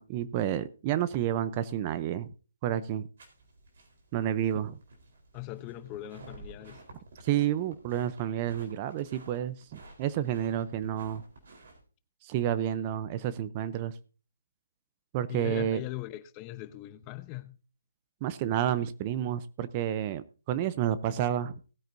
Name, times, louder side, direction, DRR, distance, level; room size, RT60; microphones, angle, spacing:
voice 1, 0.0-2.3 2.6-3.1 4.1-4.8 7.2-11.2 12.2-14.0 15.1-15.8 18.2-21.6, right 11 dB, 30° right, 0.6 m, -30 dB
sound 1, 3.2-11.8, right 2 dB, 60° right, 3.9 m, -52 dB
voice 2, 5.3-6.8 15.3-17.6, left 15 dB, 25° left, 0.8 m, -40 dB
18.5 x 9.0 x 2.6 m
hypercardioid pair, 155°, 0 cm